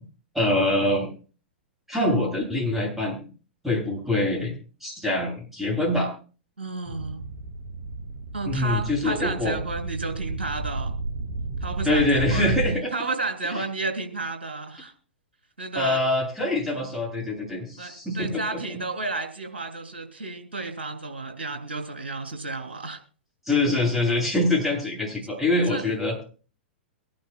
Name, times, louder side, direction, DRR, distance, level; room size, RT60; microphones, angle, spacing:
voice 1, 0.3-1.1 1.9-3.2 3.6-4.5 4.8-6.1 8.5-9.5 11.8-12.9 15.7-18.6 23.5-26.2, left 2 dB, 5° right, -1 dB, 7.5 m, -24 dB
voice 2, 6.6-7.2 8.3-10.9 11.6-12.5 12.9-14.9 15.6-16.0 17.8-23.0 25.7-26.2, right 3 dB, 75° right, 5 dB, 3.2 m, -32 dB
sound 1, 6.9-12.8, right 3 dB, 45° right, 3.6 m, -32 dB
23.5 x 11.5 x 2.2 m, 0.36 s
figure-of-eight pair, 105°, 6 cm